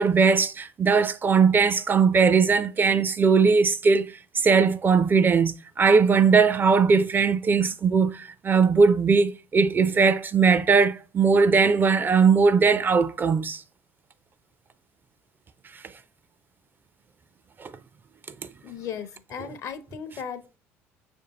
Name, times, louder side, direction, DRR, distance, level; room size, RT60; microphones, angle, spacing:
voice 1, 0.0-4.1 4.4-13.6 17.6-17.7, right 5 dB, 30° right, 0.4 m, -20 dB
voice 2, 18.6-20.6, left 7 dB, 50° left, 0.6 m, -36 dB
6.0 x 2.6 x 2.8 m
hypercardioid pair, 60°, 7 cm